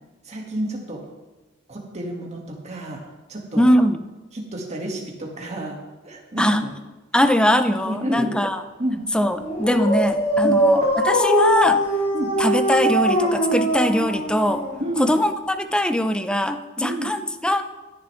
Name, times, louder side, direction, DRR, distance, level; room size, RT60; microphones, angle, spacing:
voice 1, 0.2-1.0 1.7-3.0 3.3-3.6 4.3-5.8 6.0-6.7 7.8-8.3 8.8-9.0 10.4-10.6 12.1-12.3 14.8-15.1 16.8-17.1, right 1 dB, 35° right, -1 dB, 2.3 m, -29 dB
voice 2, 3.6-4.0 6.4-6.6 7.1-8.6 9.1-11.9 12.4-14.6 15.0-17.6, equal, 5° left, 9 dB, 0.6 m, -21 dB
Dog, 9.4-15.1, equal, 30° left, 2.7 m, -21 dB
16.5 x 11.0 x 3.5 m, 1.1 s
head